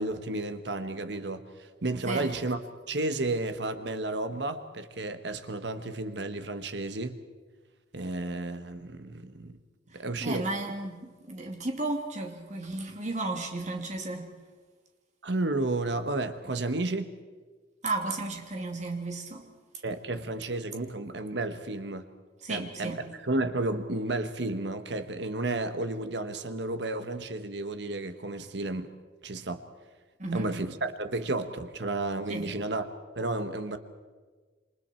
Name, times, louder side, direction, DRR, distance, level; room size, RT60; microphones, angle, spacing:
voice 1, 0.0-2.6 2.9-7.2 7.9-9.6 9.9-10.5 15.2-17.1 19.8-22.1 22.5-28.9 29.2-29.6 30.3-32.9 33.1-33.8, right 2 dB, 65° right, 1.3 m, -32 dB
voice 2, 10.2-14.3 17.8-19.4 22.4-23.0 30.2-30.5 32.3-32.5, right 2 dB, 40° right, 2.8 m, -33 dB
27.5 x 26.5 x 4.5 m
head